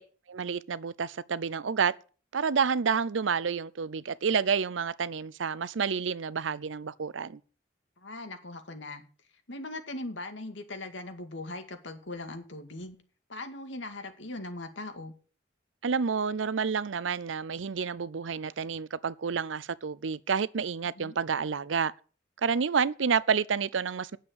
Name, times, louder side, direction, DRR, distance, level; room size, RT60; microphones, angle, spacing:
voice 1, 0.3-1.9 2.3-7.4 15.8-21.9 22.4-24.2, right 6 dB, 85° right, 0.6 m, -29 dB
voice 2, 8.0-9.0 9.5-13.0 13.3-15.1 21.0-21.2, left 2 dB, 80° left, 2.1 m, -40 dB
9.5 x 7.5 x 8.0 m
head